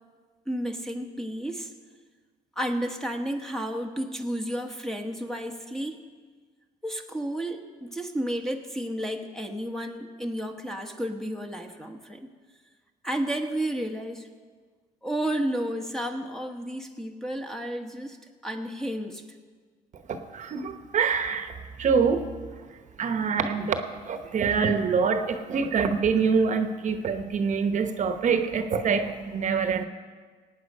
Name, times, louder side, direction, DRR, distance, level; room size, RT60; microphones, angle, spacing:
voice 1, 0.5-1.7 2.5-6.0 6.8-12.3 13.0-14.3 15.0-19.2, right 1 dB, 5° left, 4 dB, 1.1 m, -32 dB
voice 2, 20.1-21.5 21.8-22.3 23.0-29.9, right 5 dB, 45° right, 7 dB, 1.0 m, -25 dB
18.0 x 9.0 x 5.4 m, 1.5 s
cardioid pair, 110°, 17 cm